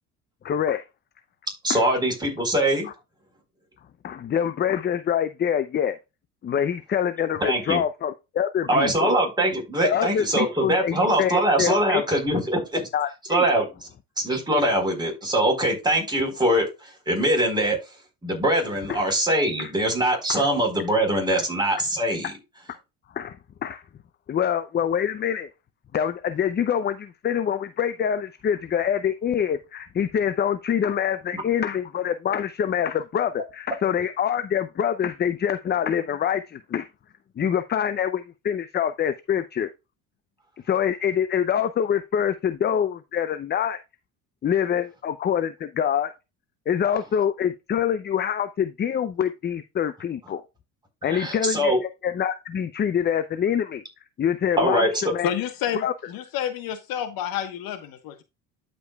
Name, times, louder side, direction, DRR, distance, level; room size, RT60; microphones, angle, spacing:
voice 1, 0.4-0.8 1.7-1.9 2.8-2.9 4.0-6.0 6.4-9.1 9.8-12.0 12.9-13.4 18.9-19.0 19.6-19.7 20.3-20.5 21.3-21.4 23.1-23.4 23.6-23.8 24.3-25.5 25.9-36.9 37.4-39.7 40.6-43.8 44.4-46.1 46.7-50.4 51.0-53.8 54.2-55.3 55.7-55.9, left 8 dB, 25° left, 0.5 m, -25 dB
voice 2, 1.6-2.9 7.4-7.8 8.7-12.8 13.3-13.9 14.2-16.6 17.1-17.8 18.2-22.3 31.3-31.4 51.1-51.8 54.6-54.9, right 1 dB, 10° right, 4.2 m, -22 dB
voice 3, 55.2-58.2, left 10 dB, 65° left, 1.3 m, -29 dB
12.5 x 5.3 x 2.3 m
supercardioid pair, 95°, 38 cm